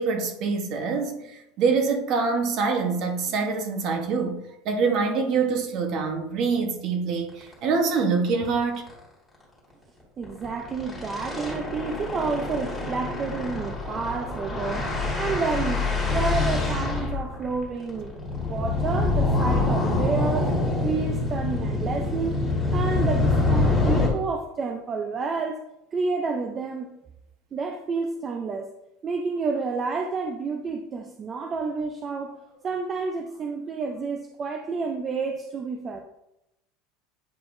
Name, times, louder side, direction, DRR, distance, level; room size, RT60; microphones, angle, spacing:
voice 1, 0.0-8.8, right 4 dB, 40° right, 1.0 m, -25 dB
sound 1, 7.4-7.5 7.9-8.0 8.3-8.5 8.7-8.9 10.2-24.1, left 2 dB, 5° left, 1.8 m, -25 dB
voice 2, 10.2-14.9 15.2-20.5 20.8-22.4 22.7-25.6 25.9-27.0 27.5-28.7 29.0-32.4 32.6-36.0, right 4 dB, 20° right, 0.4 m, -30 dB
9.1 x 5.0 x 2.6 m
supercardioid pair, 170°, 0 cm